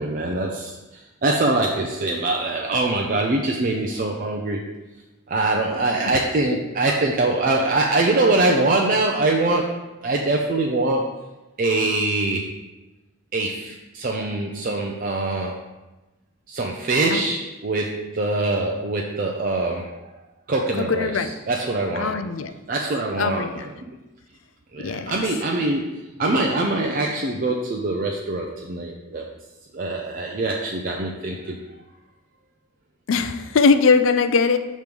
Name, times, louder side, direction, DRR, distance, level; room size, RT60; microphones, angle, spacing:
voice 1, 0.0-4.7 5.3-11.1 11.6-12.5 13.3-15.6 16.5-20.0 20.5-22.1 22.7-24.0 24.7-29.3 29.7-31.6, right 2 dB, 45° right, 0 dB, 0.5 m, -23 dB
voice 2, 20.8-21.3 22.0-22.5 23.2-23.6 24.8-25.2 33.1-34.6, left 4 dB, 75° left, 9 dB, 0.4 m, -20 dB
6.9 x 3.1 x 5.1 m, 1.1 s
head